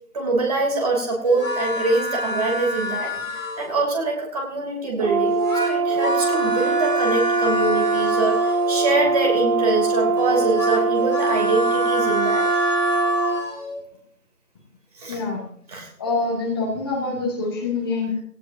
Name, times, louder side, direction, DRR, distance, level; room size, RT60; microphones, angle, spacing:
voice 1, 0.1-12.5 15.0-15.2 15.7-15.9, right 3 dB, 25° right, 1 dB, 2.9 m, -24 dB
sound 1, 1.2-3.8 5.2-8.9 10.2-13.8, left 1 dB, 60° left, 6.4 m, -27 dB
Brass instrument, 5.0-13.4, right 4 dB, 65° right, 5.1 m, -22 dB
voice 2, 15.1-15.4 16.0-18.2, left 3 dB, 15° left, -2 dB, 2.2 m, -25 dB
18.5 x 18.0 x 2.7 m, 0.66 s
figure-of-eight pair, 160°, 45 cm